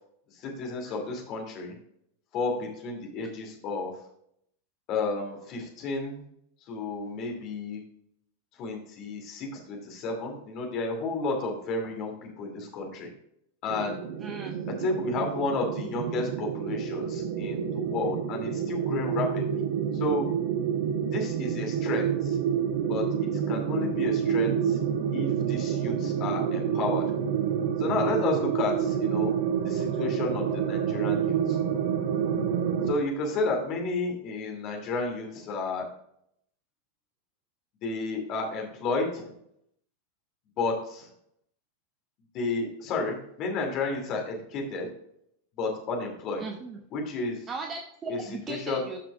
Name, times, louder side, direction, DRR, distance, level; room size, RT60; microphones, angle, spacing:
voice 1, 0.4-1.7 2.3-3.9 4.9-6.2 6.7-7.8 8.6-13.1 13.6-14.0 14.8-19.6 19.9-20.3 21.1-22.4 22.9-23.0 23.3-24.8 25.1-27.0 27.8-29.3 29.6-31.6 32.9-35.8 37.8-39.3 40.6-41.1 42.3-44.9 45.6-46.4 46.9-47.5 48.1-48.2 48.5-48.8, left 3 dB, 35° left, 1 dB, 2.6 m, -31 dB
sound 1, 13.7-32.9, right 8 dB, 50° right, 0.7 m, -28 dB
voice 2, 14.2-14.5 46.4-46.8 47.5-49.0, right 4 dB, 25° right, 4 dB, 0.9 m, -37 dB
13.5 x 5.9 x 2.4 m, 0.73 s
figure-of-eight pair, 90°, 0 cm